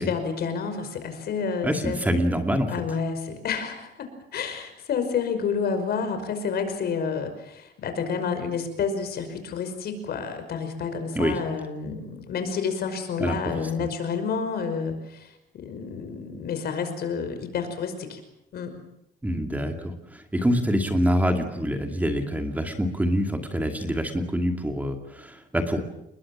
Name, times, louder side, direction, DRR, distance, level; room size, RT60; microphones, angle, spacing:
voice 1, 0.0-2.0 2.7-18.2 18.5-18.8, left 6 dB, 60° left, 8 dB, 5.5 m, -29 dB
voice 2, 1.6-2.7 11.1-11.3 13.2-13.7 19.2-25.8, equal, 10° right, 4 dB, 2.5 m, -25 dB
30.0 x 21.5 x 7.4 m, 0.82 s
cardioid pair, 160°, 19 cm